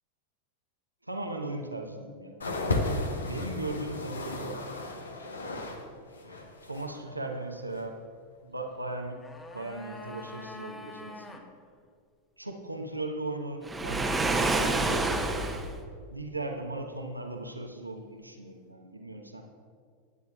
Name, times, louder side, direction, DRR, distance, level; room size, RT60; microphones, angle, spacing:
voice 1, 1.0-2.4 3.1-4.6 6.2-8.0 8.4-9.2 9.5-11.4 12.4-15.2 16.1-19.4, right 2 dB, 85° right, 3 dB, 1.0 m, -37 dB
sound 1, 2.4-5.8 6.1-7.0 7.7-7.8, left 2 dB, 70° left, 1.0 m, -34 dB
sound 2, 8.9-11.5 11.7-11.8, left 2 dB, 15° left, 1.0 m, -45 dB
Waves surf, 13.6-15.7, right 2 dB, 10° right, 0.9 m, -27 dB
20.5 x 9.5 x 2.3 m, 2.1 s
figure-of-eight pair, 90°, 0 cm